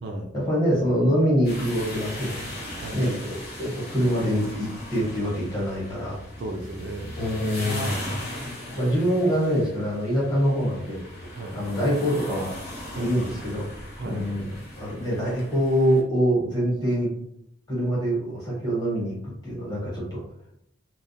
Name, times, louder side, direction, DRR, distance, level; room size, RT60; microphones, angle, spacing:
voice 1, 0.3-2.4 2.9-6.2 7.2-8.1 8.7-11.0 11.5-12.5 12.9-13.7 14.0-17.1 17.7-20.2, equal, 20° left, -5 dB, 0.9 m, -25 dB
sound 1, 1.4-16.0, left 1 dB, 50° left, 0.9 m, -39 dB
Laughter, 1.7-5.9 7.5-10.5 10.8-10.9, left 1 dB, 80° left, 0.9 m, -41 dB
voice 2, 6.4-7.2 7.7-8.2 11.3-11.6 12.9-13.1 14.0-14.2, right 2 dB, 55° right, 2 dB, 0.3 m, -35 dB
2.2 x 2.2 x 2.6 m, 0.73 s
head